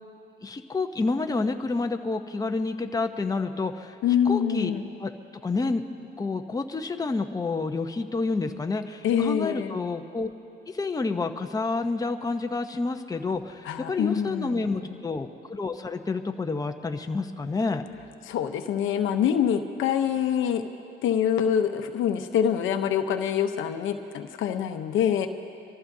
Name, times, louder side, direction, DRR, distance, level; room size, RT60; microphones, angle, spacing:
voice 1, 0.4-3.9 4.3-4.7 5.0-5.1 5.4-5.8 6.2-10.3 10.7-17.8, left 3 dB, 20° left, 5 dB, 0.8 m, -29 dB
voice 2, 4.0-4.8 9.0-9.7 13.6-14.9 18.3-20.6 21.0-25.3, left 8 dB, 85° left, 7 dB, 0.8 m, -25 dB
26.0 x 14.0 x 2.7 m, 2.6 s
cardioid pair, 90°, 20 cm